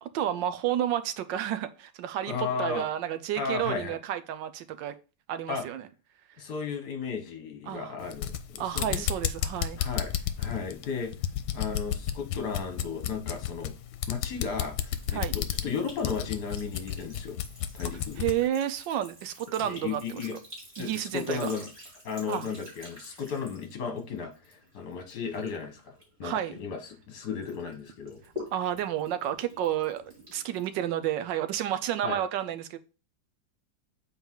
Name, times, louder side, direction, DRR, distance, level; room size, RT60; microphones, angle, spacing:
voice 1, 0.0-4.9 5.3-5.9 7.7-8.0 8.6-9.8 15.1-15.4 18.2-20.2 20.8-21.5 22.3-22.5 26.2-26.5 28.5-32.8, right 11 dB, 75° right, 11 dB, 1.2 m, -31 dB
voice 2, 2.3-2.8 3.4-4.0 5.5-5.6 6.4-9.0 9.8-10.1 10.4-11.1 11.5-13.7 14.1-17.4 17.7-18.2 19.6-20.4 20.8-21.7 22.0-25.9 26.2-28.2 32.0-32.2, left 6 dB, 55° left, 5 dB, 1.8 m, -34 dB
sound 1, 8.0-18.4, left 10 dB, 85° left, 1.4 m, -32 dB
Sink (filling or washing) / Trickle dribble, 14.9-27.0 27.4-31.3, left 2 dB, 30° right, 3.3 m, -49 dB
7.1 x 4.4 x 3.7 m, 0.34 s
omnidirectional pair, 2.1 m